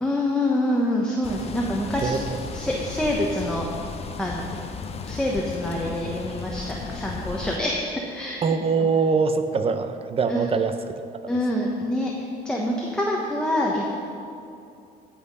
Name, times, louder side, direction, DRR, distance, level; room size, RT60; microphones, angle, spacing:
voice 1, 0.0-2.3 2.5-3.6 4.2-4.4 5.0-8.4 10.3-10.6 11.3-14.0, left 1 dB, 5° left, -2 dB, 1.2 m, -26 dB
sound 1, 1.2-7.6, left 5 dB, 35° left, 0.7 m, -35 dB
voice 2, 8.4-11.0, right 5 dB, 35° right, 9 dB, 0.8 m, -23 dB
15.0 x 5.9 x 5.5 m, 2.6 s
cardioid pair, 110°, 17 cm